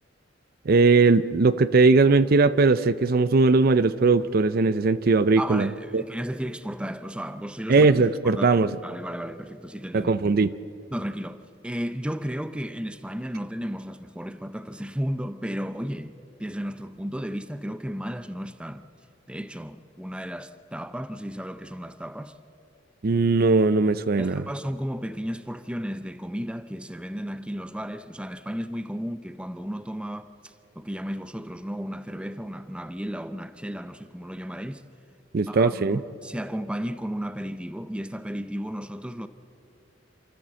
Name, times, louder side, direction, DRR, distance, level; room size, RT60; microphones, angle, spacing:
voice 1, 0.7-5.7 5.9-6.0 7.7-8.7 9.9-10.5 23.0-24.4 35.3-36.0, right 3 dB, 50° right, 0.5 m, -19 dB
voice 2, 5.4-7.9 8.2-10.1 10.9-18.9 19.3-22.4 24.2-34.8 35.5-39.3, equal, 5° right, 0.6 m, -34 dB
28.0 x 13.5 x 7.5 m
head